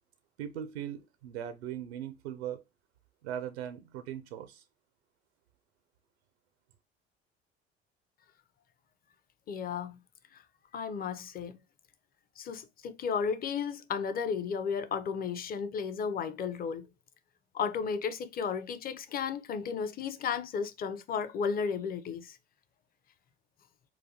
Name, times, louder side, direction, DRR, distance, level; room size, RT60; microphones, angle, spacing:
voice 1, 0.4-2.6 3.2-4.6, right 10 dB, 75° right, 0.5 m, -39 dB
voice 2, 9.5-10.0 10.3-10.4 10.7-11.6 12.4-16.9 17.5-22.4, left 6 dB, 30° left, 0.5 m, -34 dB
4.0 x 2.2 x 2.7 m
figure-of-eight pair, 60°, 32 cm